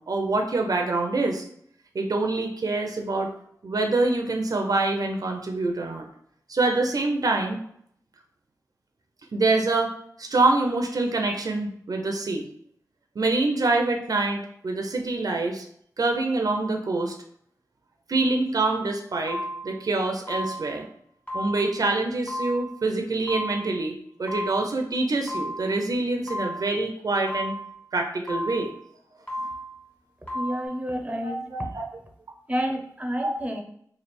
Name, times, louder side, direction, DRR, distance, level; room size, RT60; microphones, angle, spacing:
voice 1, 0.0-1.4 1.9-3.3 3.6-6.1 6.5-7.6 9.3-9.9 10.2-12.5 13.2-15.6 16.0-17.1 18.1-20.9 21.3-27.5 27.9-28.7 31.2-31.8 33.2-33.3, right 2 dB, 70° right, 3 dB, 0.5 m, -25 dB
sound 1, 18.6-18.8 19.3-19.8 20.3-20.9 21.3-21.9 22.3-22.8 23.3-23.8 24.3-24.8 25.3-25.8 26.3-26.8 27.3-27.8 28.3-28.8 29.3-29.8 30.3-30.7, equal, 20° left, 1.6 m, -34 dB
voice 2, 30.3-31.4 32.5-33.6, equal, 20° right, 2 dB, 0.6 m, -29 dB
3.2 x 2.4 x 4.2 m, 0.66 s
wide cardioid pair, 70°, 7 cm